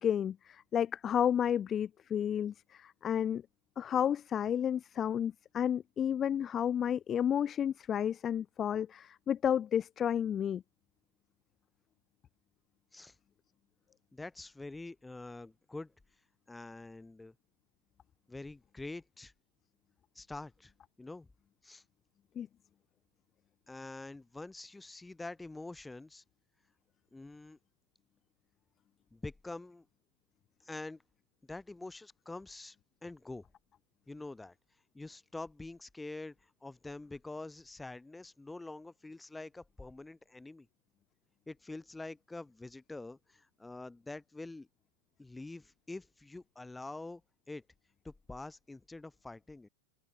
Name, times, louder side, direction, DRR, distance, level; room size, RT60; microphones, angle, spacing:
voice 1, 0.0-3.4 3.8-10.6 22.4-22.5, left 9 dB, 25° left, 0.3 m, -31 dB
voice 2, 14.1-15.9 16.5-17.3 18.3-19.3 20.2-20.7 21.0-21.3 21.6-21.8 23.7-26.2 27.1-27.6 29.1-29.9 30.6-31.0 31.5-32.8 33.0-33.4 34.1-34.5 34.9-36.4 36.6-40.7 41.5-44.7 45.2-47.2 47.5-47.6 48.0-49.7, left 2 dB, 5° left, 1.9 m, -46 dB
open air
figure-of-eight pair, 90°, 0 cm